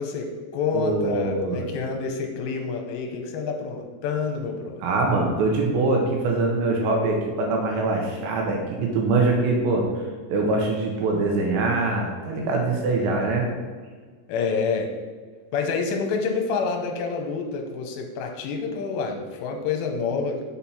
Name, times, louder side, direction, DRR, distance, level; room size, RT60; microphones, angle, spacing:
voice 1, 0.0-4.8 14.3-14.9 15.5-20.4, left 5 dB, 80° left, 3 dB, 2.8 m, -28 dB
voice 2, 0.7-1.7 4.8-9.9 10.3-13.5, right 3 dB, 80° right, 0 dB, 3.0 m, -23 dB
7.2 x 4.3 x 4.2 m, 1.5 s
omnidirectional pair, 5.3 m